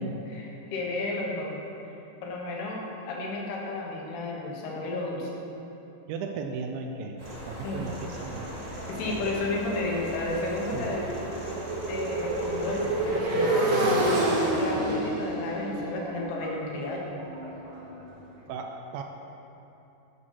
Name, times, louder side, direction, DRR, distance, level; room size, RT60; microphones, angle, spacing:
voice 1, 0.3-1.6 2.2-5.4 7.6-7.9 8.9-11.1 11.9-17.2, left 2 dB, 85° left, -2 dB, 3.3 m, -32 dB
voice 2, 6.1-7.2 7.5-8.5 9.0-9.3 10.7-10.9 18.5-19.0, right 5 dB, 80° right, 4 dB, 2.2 m, -36 dB
sound 1, 7.2-13.2, right 1 dB, 35° right, 1.4 m, -39 dB
Motorcycle, 8.4-18.2, right 1 dB, 60° right, 1.9 m, -30 dB
9.8 x 6.2 x 5.8 m, 2.9 s
omnidirectional pair, 4.5 m